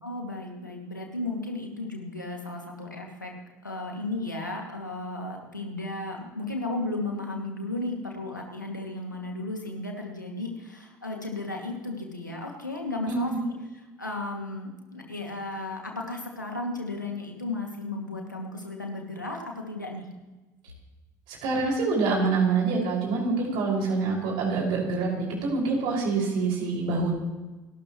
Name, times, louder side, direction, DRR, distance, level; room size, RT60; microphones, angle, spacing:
voice 1, 0.0-3.3 3.6-13.5 14.0-20.1, left 2 dB, 90° left, 1 dB, 2.3 m, -34 dB
voice 2, 13.1-13.4 21.3-27.1, right 4 dB, 55° right, -2 dB, 5.9 m, -26 dB
29.5 x 12.5 x 3.2 m, 1.1 s
figure-of-eight pair, 60°, 10 cm